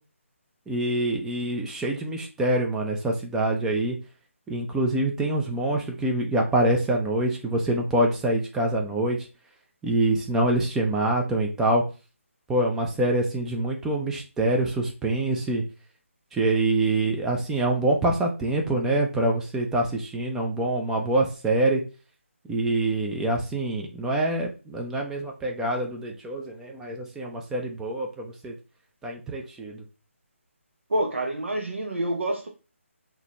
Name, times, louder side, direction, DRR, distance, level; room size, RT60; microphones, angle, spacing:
voice 1, 0.7-4.0 4.5-9.2 9.8-11.8 12.5-15.6 16.3-21.8 22.5-28.5 29.0-29.8, right 1 dB, 5° right, 1 dB, 0.6 m, -25 dB
voice 2, 30.9-32.5, right 1 dB, 60° right, 2 dB, 0.9 m, -27 dB
5.7 x 2.9 x 3.2 m, 0.32 s
figure-of-eight pair, 150°, 7 cm